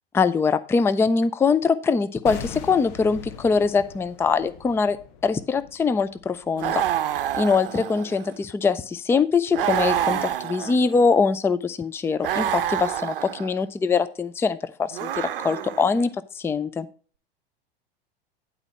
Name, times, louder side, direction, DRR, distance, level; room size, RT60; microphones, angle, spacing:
voice 1, 0.1-5.0 5.2-6.8 7.3-16.1 16.3-16.9, left 5 dB, 10° left, 13 dB, 0.4 m, -23 dB
sound 1, 2.3-7.3 7.5-7.7, left 7 dB, 50° left, 1.1 m, -41 dB
sound 2, 6.6-8.4 9.5-11.1 12.2-13.6 14.9-16.0, right 11 dB, 70° right, 0.7 m, -27 dB
9.8 x 4.3 x 5.4 m, 0.40 s
figure-of-eight pair, 85°, 29 cm